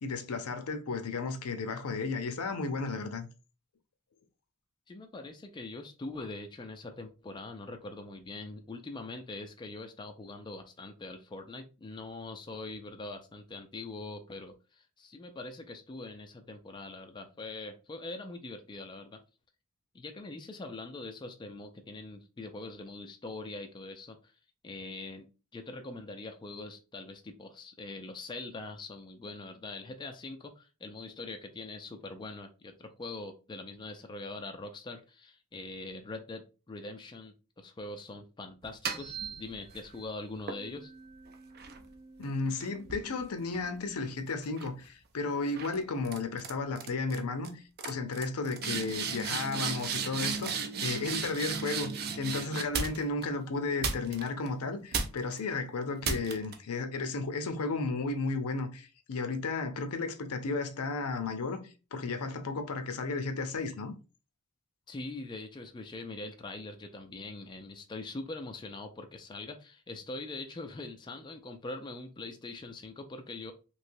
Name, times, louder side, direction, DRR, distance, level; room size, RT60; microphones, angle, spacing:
voice 1, 0.0-3.3 42.2-61.6 61.9-63.9, left 3 dB, 80° left, 0.6 m, -34 dB
voice 2, 4.9-19.2 19.9-24.3 24.6-25.3 25.5-40.9 64.9-73.5, left 2 dB, 20° left, 0.3 m, -43 dB
sound 1, 38.6-39.9 40.5-44.0 44.4-44.8 45.6-45.8 46.0-46.5 46.8-47.2 47.4-47.5 47.8-53.2 53.8-54.5 54.9-55.4 56.0-56.5, right 5 dB, 45° right, 0.5 m, -36 dB
3.2 x 2.8 x 2.6 m
head